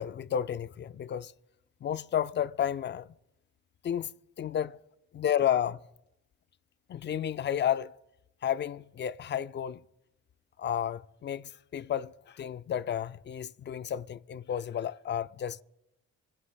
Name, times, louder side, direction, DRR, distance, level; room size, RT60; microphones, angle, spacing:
voice 1, 0.0-1.3 1.8-3.1 3.8-4.1 4.4-4.8 5.1-5.8 6.9-7.9 8.4-9.8 10.6-15.6, left 9 dB, 40° left, 0.4 m, -32 dB
26.0 x 11.0 x 2.3 m
cardioid pair, 90°, 30 cm